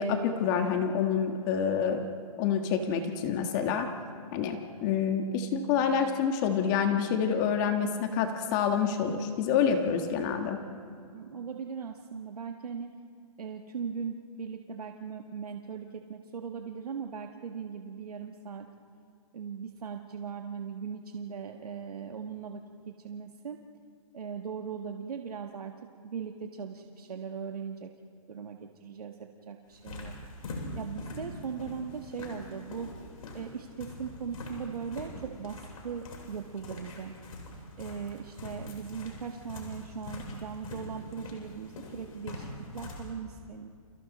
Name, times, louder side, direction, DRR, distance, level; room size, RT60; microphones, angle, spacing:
voice 1, 0.0-2.0 2.4-3.9 4.3-10.6, left 7 dB, 30° left, 5 dB, 1.7 m, -27 dB
voice 2, 11.1-12.9 13.4-18.7 19.3-23.6 24.1-25.7 26.0-27.9 28.3-30.1 30.7-32.9 33.3-37.1 37.8-43.7, right 6 dB, 90° right, 3 dB, 1.6 m, -39 dB
sound 1, 29.7-43.1, left 2 dB, 70° left, 8.0 m, -43 dB
30.0 x 28.5 x 4.3 m, 2.2 s
hypercardioid pair, 150°, 19 cm